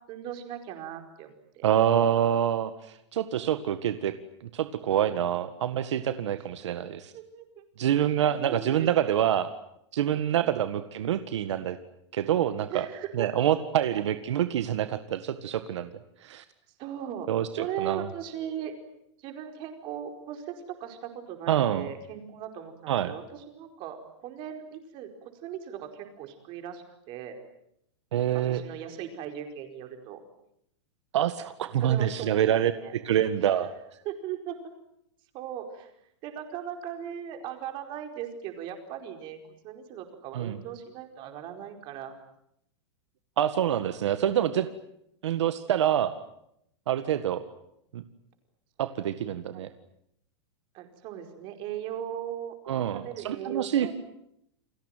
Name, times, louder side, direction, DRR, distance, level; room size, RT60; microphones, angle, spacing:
voice 1, 0.1-1.6 7.1-7.6 8.2-9.2 10.3-10.6 12.7-13.5 16.8-17.3 17.6-18.7 19.2-20.5 20.8-27.3 28.3-30.2 31.8-32.3 32.7-32.9 33.5-33.7 34.0-34.6 35.3-35.9 36.2-39.4 39.6-42.2 49.5-49.7 50.7-52.5 52.9-53.9, right 9 dB, 35° right, 5 dB, 4.9 m, -38 dB
voice 2, 1.6-2.7 3.1-4.2 4.5-7.0 7.8-9.5 9.9-11.8 12.1-12.9 13.1-15.9 16.2-16.4 17.3-18.1 21.5-21.9 22.9-23.1 28.1-28.6 31.1-33.7 40.3-40.6 43.4-44.7 45.2-46.1 46.9-47.4 47.9-48.0 48.8-49.7 52.7-53.9, right 10 dB, 80° right, 10 dB, 1.8 m, -26 dB
30.0 x 21.5 x 9.2 m, 0.77 s
supercardioid pair, 160°, 15 cm